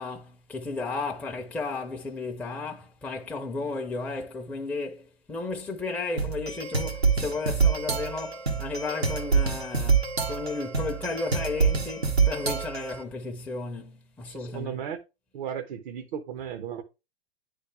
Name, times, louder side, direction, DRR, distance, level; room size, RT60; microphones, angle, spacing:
voice 1, 0.0-14.7, left 3 dB, 5° left, 0.6 m, -34 dB
sound 1, 6.2-13.0, right 5 dB, 85° right, 1.2 m, -26 dB
voice 2, 14.2-15.0 15.3-16.8, right 8 dB, 50° right, 0.7 m, -35 dB
9.6 x 3.4 x 3.3 m
figure-of-eight pair, 100°, 31 cm